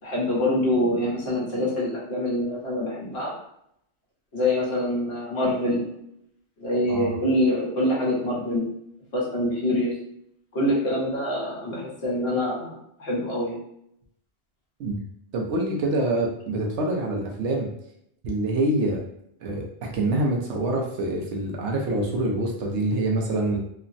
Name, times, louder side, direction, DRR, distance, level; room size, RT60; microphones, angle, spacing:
voice 1, 0.0-3.3 4.3-5.9 6.6-8.7 9.1-10.0 10.5-12.7 13.0-13.6, left 1 dB, 65° left, -5 dB, 1.2 m, -25 dB
voice 2, 15.3-17.7 18.2-19.0 19.4-19.6 19.9-23.6, right 2 dB, 85° right, 0 dB, 1.0 m, -25 dB
3.3 x 2.0 x 2.5 m, 0.74 s
omnidirectional pair, 1.2 m